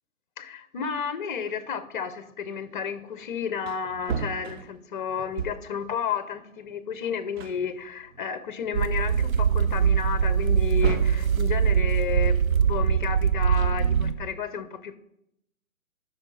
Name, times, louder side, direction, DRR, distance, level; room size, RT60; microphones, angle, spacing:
voice 1, 0.4-15.0, left 6 dB, 40° left, 0.8 m, -32 dB
Wood, 3.2-3.3 3.5-5.8 6.9-7.0 7.4-8.5 9.0-9.1 10.4-11.3 13.3-14.3, right 6 dB, 50° right, 0.9 m, -35 dB
sound 1, 8.7-14.1, right 7 dB, 80° right, 0.8 m, -22 dB
12.5 x 5.7 x 4.0 m
figure-of-eight pair, 135°, 41 cm